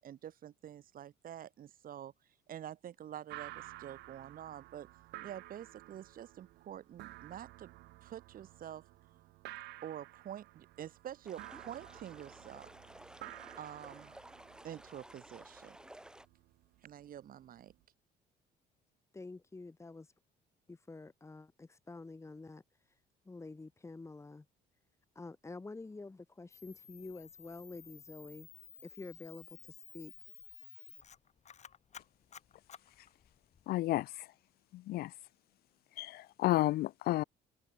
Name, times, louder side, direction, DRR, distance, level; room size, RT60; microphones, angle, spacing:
voice 1, 0.0-2.1 2.5-4.9 5.2-7.7 8.0-8.8 9.8-12.7 13.6-14.1 14.6-15.8 16.8-17.7, right 10 dB, 55° right, 6.2 m, -47 dB
sound 1, 3.3-17.8, right 18 dB, 85° right, 3.7 m, -53 dB
sound 2, 11.2-16.3, right 1 dB, 5° right, 1.8 m, -55 dB
voice 2, 19.1-20.1 20.7-22.6 23.3-24.5 25.2-28.5 28.8-30.1, left 3 dB, 15° left, 3.9 m, -48 dB
Camera, 26.5-33.7, left 7 dB, 45° left, 4.6 m, -55 dB
voice 3, 33.7-34.3 34.7-35.1 36.0-37.2, left 16 dB, 65° left, 0.5 m, -32 dB
open air
cardioid pair, 110°, 17 cm